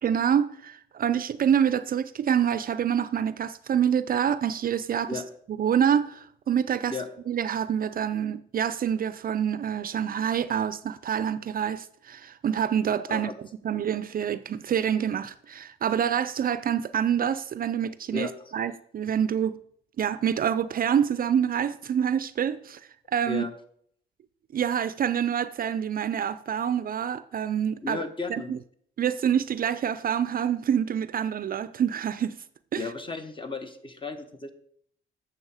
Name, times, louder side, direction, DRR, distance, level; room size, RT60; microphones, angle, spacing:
voice 1, 0.0-5.2 5.6-7.0 7.3-13.3 13.6-19.6 20.0-22.8 23.1-23.5 24.5-28.0 28.3-28.6 29.0-32.4 32.7-32.9, right 8 dB, 45° right, 0.5 m, -26 dB
voice 2, 27.8-28.5 32.7-34.5, left 3 dB, 25° left, 1.2 m, -34 dB
8.9 x 6.9 x 4.9 m
cardioid pair, 90°, 20 cm